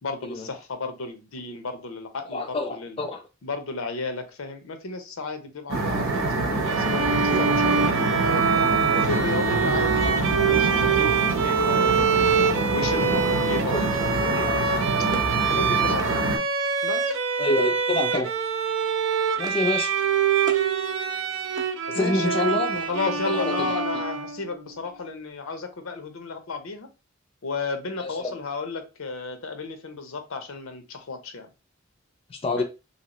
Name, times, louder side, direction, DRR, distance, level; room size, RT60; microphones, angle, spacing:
voice 1, 0.0-3.0 3.4-8.5 8.9-12.4 12.7-13.9 14.3-15.1 15.5-16.3 16.8-17.2 21.9-26.9 27.4-31.5 32.6-32.7, left 3 dB, 80° left, 0.6 m, -33 dB
voice 2, 2.3-3.2 13.7-13.9 17.4-18.3 19.4-19.9 21.9-23.8 28.0-28.3 32.3-32.6, left 2 dB, 25° left, 0.4 m, -27 dB
sound 1, 5.7-16.4, right 2 dB, 90° right, 0.9 m, -26 dB
Bowed string instrument, 6.7-24.5, right 6 dB, 65° right, 0.5 m, -25 dB
sound 2, 14.7-16.1 17.4-17.9 18.1-18.4 18.7-19.8 20.0-20.7 21.1-22.3, right 3 dB, 20° right, 0.6 m, -42 dB
2.8 x 2.7 x 2.9 m
head